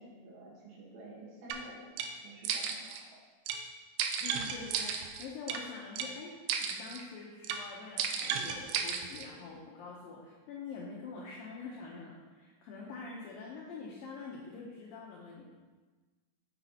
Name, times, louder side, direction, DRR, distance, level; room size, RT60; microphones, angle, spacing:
voice 1, 0.0-3.2, right 1 dB, 70° right, -3 dB, 3.1 m, -51 dB
sound 1, 1.5-1.6 2.0-2.1 2.4-3.0 3.5-3.6 4.0-5.6 6.0-6.1 6.5-7.0 7.4-7.6 8.0-9.3, right 7 dB, 85° right, 2.8 m, -34 dB
voice 2, 4.2-15.5, left 4 dB, 80° left, -3 dB, 2.1 m, -45 dB
9.2 x 7.1 x 2.8 m, 1.3 s
omnidirectional pair, 4.9 m